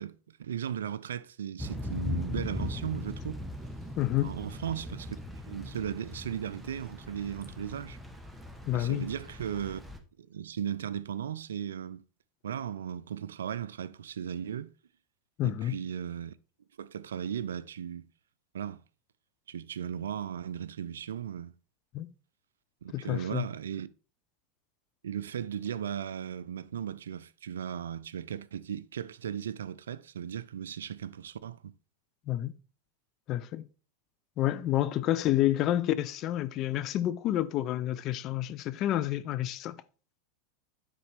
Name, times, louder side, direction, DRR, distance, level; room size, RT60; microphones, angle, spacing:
voice 1, 0.0-3.4 4.2-5.2 5.5-8.0 8.7-9.8 10.3-12.0 12.4-14.7 15.4-16.3 16.8-18.1 18.5-18.8 19.5-21.5 22.8-23.9 25.0-31.7, right 9 dB, 85° right, 0.3 m, -36 dB
Thunder / Rain, 1.6-10.0, left 2 dB, 5° right, 1.0 m, -39 dB
voice 2, 4.0-4.4 8.7-9.1 15.4-15.7 21.9-22.1 22.9-23.5 32.3-32.5 33.3-33.6 34.4-39.8, left 13 dB, 45° left, 0.5 m, -29 dB
9.3 x 4.0 x 3.4 m
hypercardioid pair, 95°, 0 cm